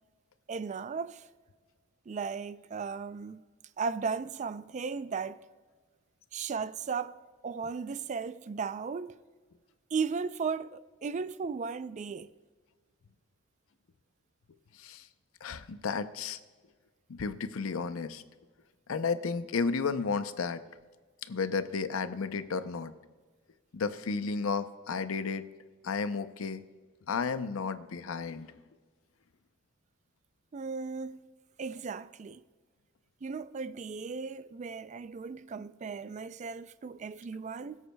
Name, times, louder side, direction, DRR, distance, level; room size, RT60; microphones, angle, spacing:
voice 1, 0.5-1.3 2.1-3.4 3.8-5.4 6.3-7.2 7.4-9.2 9.9-12.3 30.5-31.2 31.6-32.4 33.2-37.8, right 5 dB, 35° right, 0.3 m, -36 dB
voice 2, 15.4-16.4 17.1-18.2 18.9-20.6 21.2-22.9 23.7-25.5 25.8-26.6 27.1-28.5, left 5 dB, 90° left, 0.6 m, -33 dB
21.5 x 8.2 x 2.2 m
head